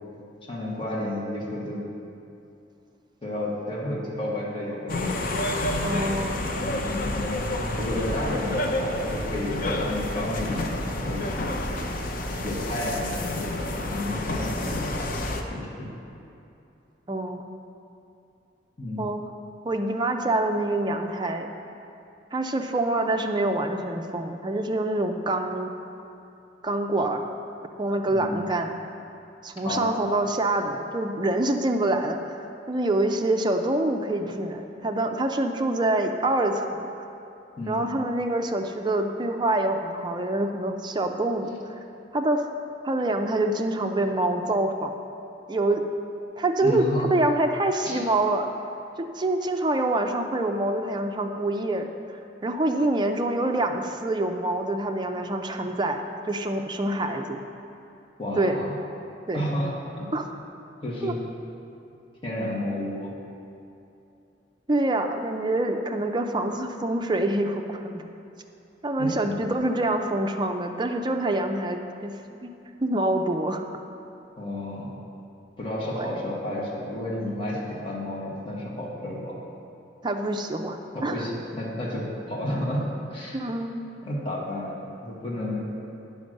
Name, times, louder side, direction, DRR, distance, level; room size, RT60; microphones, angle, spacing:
voice 1, 0.5-1.8 3.2-5.2 6.5-6.8 7.8-11.2 12.4-13.6 13.8-15.1 15.5-15.9 18.8-19.0 28.1-28.5 29.6-30.0 37.6-37.9 46.6-47.1 47.8-48.0 58.2-58.7 59.3-60.1 60.8-61.2 62.2-63.1 69.0-69.4 74.4-74.9 75.6-79.3 80.9-82.8 83.1-83.4 84.0-84.7 85.0-85.7, left 1 dB, 30° left, -5 dB, 1.4 m, -31 dB
sound 1, 4.9-15.4, left 1 dB, 50° left, 0.6 m, -29 dB
voice 2, 5.8-6.4 17.1-17.4 19.0-19.2 19.6-21.5 22.3-25.7 26.6-27.3 27.8-28.9 29.4-36.9 37.7-41.7 42.1-42.4 42.8-44.9 45.5-45.8 46.4-48.5 49.0-51.9 52.4-57.4 58.4-58.6 59.3-59.4 60.1-60.3 61.0-61.1 64.7-68.0 68.8-72.1 72.4-72.5 72.8-73.6 75.9-76.2 80.0-81.3 83.3-83.9, right 2 dB, 25° right, 4 dB, 0.5 m, -26 dB
9.3 x 5.3 x 6.4 m, 2.7 s
head